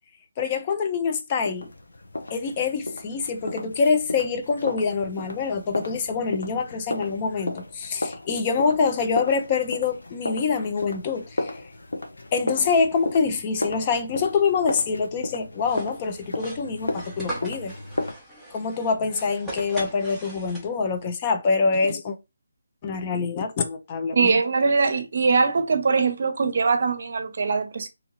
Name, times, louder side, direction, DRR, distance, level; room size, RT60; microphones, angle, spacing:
voice 1, 0.4-1.7 2.3-11.6 12.3-17.7 18.5-22.2 22.8-24.4, left 5 dB, 25° left, 0.4 m, -25 dB
sound 1, 1.4-18.1, left 2 dB, 75° left, 0.7 m, -34 dB
sound 2, 15.6-21.0, right 1 dB, 5° left, 0.7 m, -39 dB
voice 2, 24.1-27.9, right 4 dB, 55° right, 0.6 m, -22 dB
2.8 x 2.6 x 2.9 m
figure-of-eight pair, 160°, 0 cm